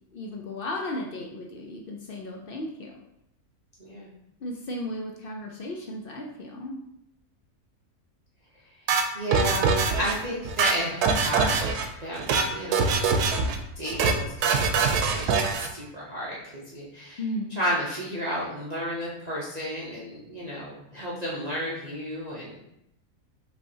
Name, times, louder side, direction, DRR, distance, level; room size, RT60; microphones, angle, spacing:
voice 1, 0.1-2.9 4.4-6.8 17.2-17.5, left 1 dB, 70° left, 0 dB, 0.5 m, -35 dB
sound 1, 8.9-10.1 10.4-11.8 12.1-12.5 12.7-13.6 13.8-14.2 14.4-15.7, right 5 dB, 85° right, 1.1 m, -23 dB
voice 2, 9.1-11.7 12.0-13.0 13.8-17.2 17.6-22.5, equal, 35° right, -7 dB, 0.7 m, -32 dB
5.3 x 3.4 x 2.7 m, 0.81 s
omnidirectional pair, 1.6 m